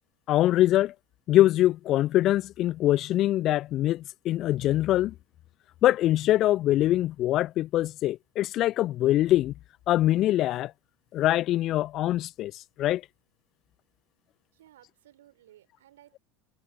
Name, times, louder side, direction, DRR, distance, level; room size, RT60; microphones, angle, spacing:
voice 1, 0.3-0.9 1.3-5.1 5.8-9.5 9.9-10.7 11.1-12.5 12.8-13.0, left 14 dB, 45° left, 0.3 m, -23 dB
voice 2, 14.5-16.2, right 13 dB, 70° right, 3.9 m, -57 dB
figure-of-eight pair, 75°, 0 cm